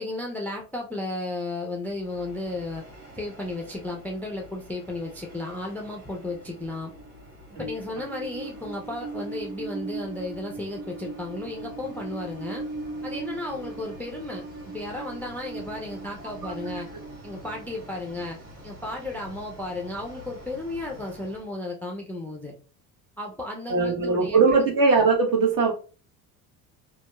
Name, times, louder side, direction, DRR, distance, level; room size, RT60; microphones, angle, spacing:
voice 1, 0.0-2.8 3.1-6.9 7.6-12.6 13.0-16.9 17.2-18.4 18.6-22.5 23.2-24.7, left 2 dB, 5° left, 0 dB, 0.3 m, -34 dB
Train, 2.0-21.5, right 3 dB, 80° right, 1.1 m, -41 dB
voice 2, 16.2-16.5 23.7-25.7, right 4 dB, 50° right, 0 dB, 1.2 m, -21 dB
2.7 x 2.3 x 2.2 m, 0.37 s
supercardioid pair, 95°, 42 cm